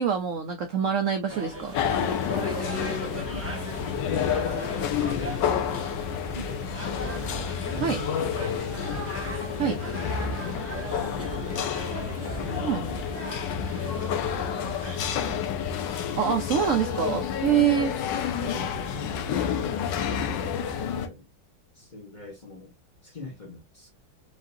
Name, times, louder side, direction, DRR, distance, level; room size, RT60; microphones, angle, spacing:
voice 1, 0.0-1.7 7.8-8.0 9.6-9.8 12.6-12.8 16.2-17.9, right 8 dB, 70° right, 0.7 m, -25 dB
sound 1, 1.3-15.4, right 1 dB, 10° right, 1.0 m, -39 dB
sound 2, 1.7-21.1, left 7 dB, 70° left, 1.3 m, -29 dB
sound 3, 2.0-10.8, left 2 dB, 85° left, 2.0 m, -47 dB
voice 2, 2.5-4.6 5.0-5.7 6.3-7.3 7.7-9.2 9.6-10.1 10.4-11.7 12.2-15.4 18.4-21.3 21.7-22.7 23.0-23.9, left 3 dB, 30° left, 1.1 m, -43 dB
4.9 x 2.8 x 2.6 m
omnidirectional pair, 2.1 m